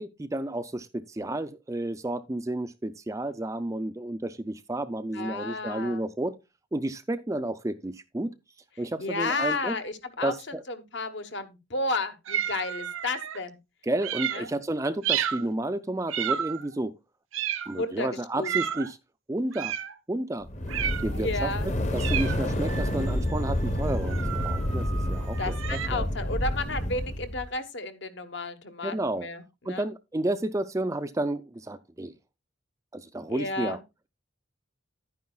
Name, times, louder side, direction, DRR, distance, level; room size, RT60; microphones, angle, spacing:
voice 1, 0.0-6.4 6.7-8.3 8.8-9.8 10.2-10.6 13.8-16.9 17.7-19.0 19.3-19.7 20.1-20.5 21.0-26.1 28.8-29.3 29.7-32.2 32.9-33.8, right 1 dB, 15° right, 0.4 m, -31 dB
voice 2, 5.1-6.0 9.0-10.3 10.7-13.6 14.3-14.5 17.7-18.1 18.4-18.5 21.2-21.7 25.4-29.9 33.3-33.8, left 2 dB, 55° left, 1.1 m, -32 dB
sound 1, 12.3-13.4 14.0-14.5 15.0-15.5 16.1-16.7 17.3-17.9 18.4-18.9 19.5-20.0 20.7-21.2 22.0-25.9, right 9 dB, 75° right, 0.7 m, -32 dB
sound 2, 20.5-27.4, left 1 dB, 35° left, 1.0 m, -29 dB
11.0 x 9.3 x 2.3 m
head